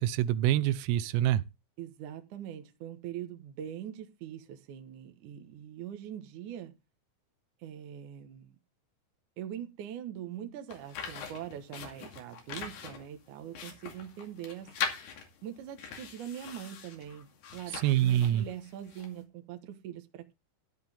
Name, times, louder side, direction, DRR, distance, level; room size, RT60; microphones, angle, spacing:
voice 1, 0.0-1.4 17.8-18.5, right 12 dB, 90° right, 3.3 m, -26 dB
voice 2, 1.8-6.8 7.6-8.6 9.4-14.7 15.4-20.3, right 10 dB, 70° right, 1.9 m, -42 dB
sound 1, 10.7-19.2, left 6 dB, 60° left, 3.9 m, -41 dB
14.0 x 9.6 x 3.6 m
omnidirectional pair, 5.7 m